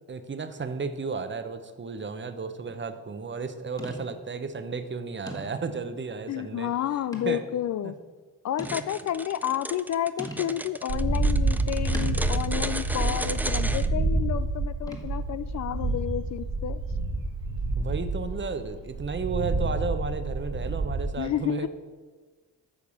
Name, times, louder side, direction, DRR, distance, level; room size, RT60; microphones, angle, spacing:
voice 1, 0.1-6.7 7.3-7.4 7.8-7.9 17.8-21.7, right 4 dB, 30° right, 10 dB, 0.8 m, -33 dB
sound 1, 2.6-2.9 3.8-4.3 4.8-4.9 5.3-5.9 7.1-7.5 8.0-8.1 8.6-9.2 10.2-10.6 11.9-12.5 13.5-13.9 14.9-15.3, equal, 10° left, 1.6 m, -41 dB
voice 2, 6.3-7.9 8.4-16.8 21.2-21.7, left 11 dB, 55° left, 15 dB, 0.4 m, -30 dB
sound 2, 8.6-13.9, right 1 dB, 5° right, 0.4 m, -35 dB
sound 3, 10.9-21.1, right 2 dB, 85° right, 2.6 m, -28 dB
8.7 x 4.7 x 7.1 m, 1.4 s
supercardioid pair, 65°, 36 cm